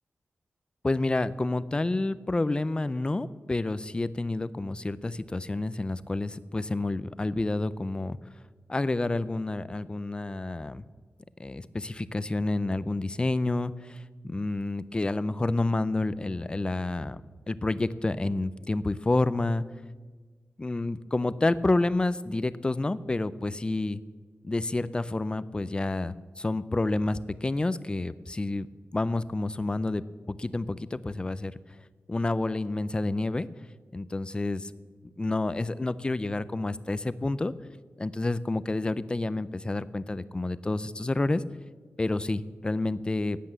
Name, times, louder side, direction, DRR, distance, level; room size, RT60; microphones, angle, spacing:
voice 1, 0.8-8.2 8.7-10.8 11.4-17.2 17.5-19.6 20.6-24.0 24.4-28.7 28.9-31.5 32.1-33.5 33.9-34.7 35.2-37.5 38.0-41.4 42.0-43.4, left 2 dB, 20° left, 16 dB, 0.5 m, -29 dB
16.5 x 10.0 x 7.6 m, 1.4 s
wide cardioid pair, 155°, 4 cm